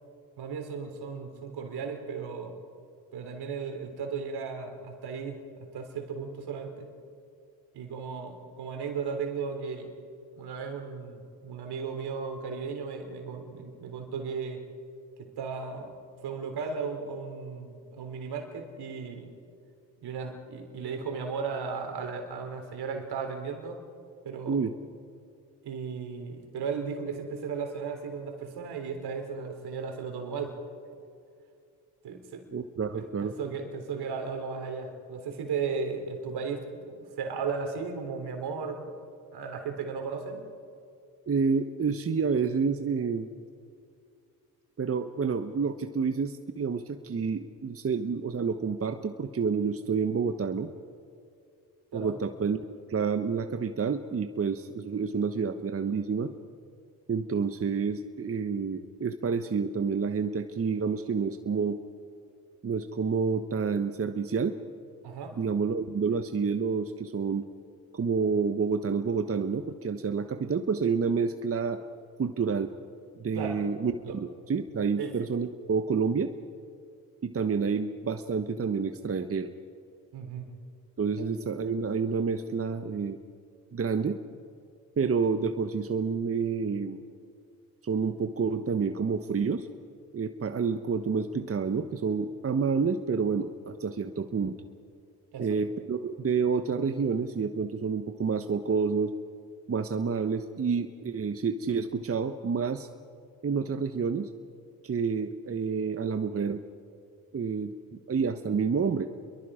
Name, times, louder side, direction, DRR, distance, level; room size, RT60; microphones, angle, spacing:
voice 1, 0.4-2.6 3.1-6.9 7.7-9.9 10.4-14.6 15.2-16.0 16.2-19.3 20.0-23.8 24.2-24.6 25.6-30.6 32.0-32.5 32.9-38.8 39.3-40.5 51.9-52.1 65.0-65.4 73.3-73.6 74.0-74.2 75.0-75.2 80.1-80.5 81.2-81.3 95.3-95.6, right 5 dB, 65° right, 4 dB, 3.9 m, -35 dB
voice 2, 32.5-33.3 41.3-43.3 44.8-50.7 51.9-52.6 52.9-56.3 57.1-61.8 62.6-64.6 65.4-67.4 67.9-71.8 72.2-72.7 73.2-76.3 77.2-79.5 81.0-83.2 83.7-84.2 85.0-87.0 87.8-89.7 90.1-94.6 95.4-99.1 99.7-102.9 103.4-104.3 104.8-106.6 107.3-109.1, right 5 dB, 35° right, 8 dB, 1.2 m, -29 dB
29.5 x 22.5 x 5.1 m, 2.4 s
hypercardioid pair, 55°, 42 cm